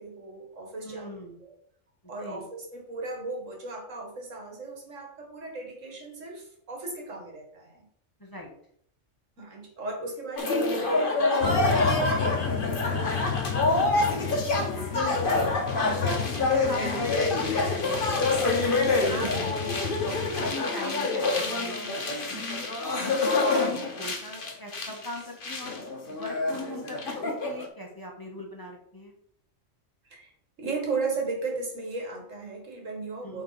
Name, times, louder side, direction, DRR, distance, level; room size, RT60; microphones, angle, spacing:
voice 1, 0.0-1.1 1.4-1.5 2.1-7.8 9.4-13.3 13.7-14.0 19.0-19.5 30.0-30.3 30.6-33.4, right 3 dB, 80° right, 1 dB, 2.1 m, -36 dB
voice 2, 0.8-1.4 2.2-2.4 8.2-8.5 12.0-12.1 14.0-15.7 16.0-18.2 18.7-19.5 20.1-22.0 22.3-22.7 23.0-25.8 26.1-29.1 33.2-33.4, left 1 dB, 15° left, -1 dB, 1.4 m, -40 dB
sound 1, 10.4-27.7, left 2 dB, 45° left, 1.3 m, -27 dB
sound 2, 11.4-20.5, left 7 dB, 75° left, 1.2 m, -33 dB
9.2 x 4.1 x 4.1 m, 0.67 s
omnidirectional pair, 1.3 m